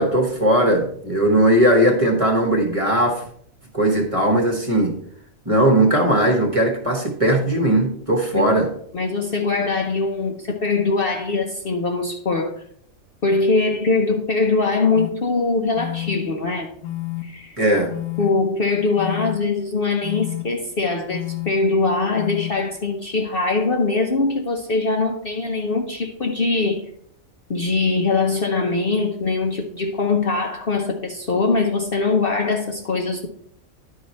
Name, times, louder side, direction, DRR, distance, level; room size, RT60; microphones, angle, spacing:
voice 1, 0.0-3.2 3.7-5.0 5.4-8.7 17.6-17.9, right 1 dB, 25° right, 1.1 m, -18 dB
voice 2, 8.9-12.5 13.2-16.7 17.2-17.6 18.2-26.9 27.5-33.3, left 3 dB, 50° left, 0.8 m, -22 dB
sound 1, 14.9-15.1 15.8-16.2 16.8-17.2 17.9-18.3 19.0-19.4 20.0-20.4 21.1-21.5 22.2-22.5, left 17 dB, 90° left, 1.3 m, -29 dB
10.5 x 4.7 x 4.1 m
omnidirectional pair, 1.5 m